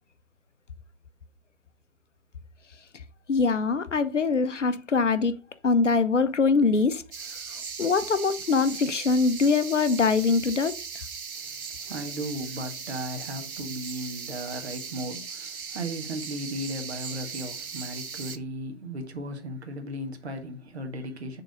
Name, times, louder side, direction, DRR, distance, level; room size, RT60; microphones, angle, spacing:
voice 1, 3.3-5.4 5.6-7.0 7.8-10.8, left 4 dB, 55° left, 0.7 m, -23 dB
sound 1, 7.1-18.4, right 5 dB, 80° right, 0.8 m, -38 dB
voice 2, 11.3-21.4, right 1 dB, 50° right, 1.6 m, -36 dB
6.7 x 3.8 x 5.2 m
figure-of-eight pair, 145°, 43 cm